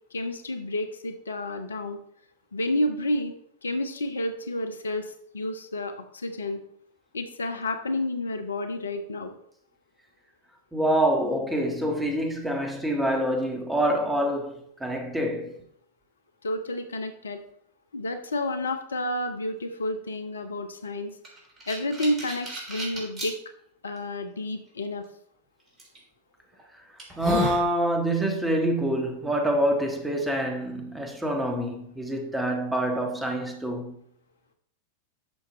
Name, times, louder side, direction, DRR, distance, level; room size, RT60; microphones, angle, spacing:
voice 1, 0.1-2.0 2.5-3.3 3.6-6.6 7.1-9.3 16.4-17.4 17.9-21.1 21.7-23.3 23.8-25.0, left 1 dB, 70° left, 0.8 m, -30 dB
voice 2, 10.7-15.5 27.2-34.0, right 1 dB, 5° right, 1.6 m, -26 dB
sound 1, 21.2-23.3 24.0-24.1 25.8-26.0 26.5-26.6 27.0-27.7, left 1 dB, 25° right, 3.7 m, -31 dB
11.0 x 6.7 x 3.6 m
figure-of-eight pair, 90°, 0 cm